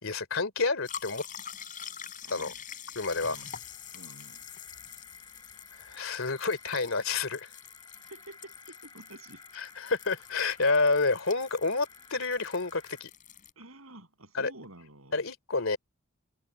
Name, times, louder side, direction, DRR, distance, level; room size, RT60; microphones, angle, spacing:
voice 1, 0.0-1.2 2.3-2.5 2.9-3.3 5.7-7.5 9.8-13.1 14.3-14.5 15.1-15.8, left 3 dB, 65° left, 3.3 m, -29 dB
sound 1, 0.8-13.5, left 8 dB, 40° left, 3.8 m, -46 dB
voice 2, 2.2-2.6 3.2-3.6 3.9-4.5 7.8-9.4 13.6-15.2, right 1 dB, 75° right, 7.7 m, -50 dB
sound 2, 3.0-13.0, left 3 dB, 20° left, 4.3 m, -55 dB
head